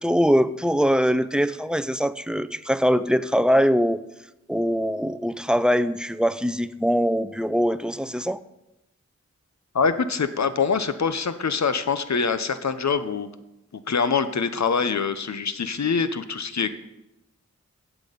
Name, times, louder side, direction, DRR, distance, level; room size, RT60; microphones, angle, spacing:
voice 1, 0.0-4.0 4.5-8.4, equal, 5° right, 14 dB, 0.5 m, -22 dB
voice 2, 9.7-13.3 13.7-16.7, left 5 dB, 70° left, 11 dB, 0.8 m, -24 dB
16.0 x 6.1 x 5.2 m, 0.92 s
cardioid pair, 45°, 29 cm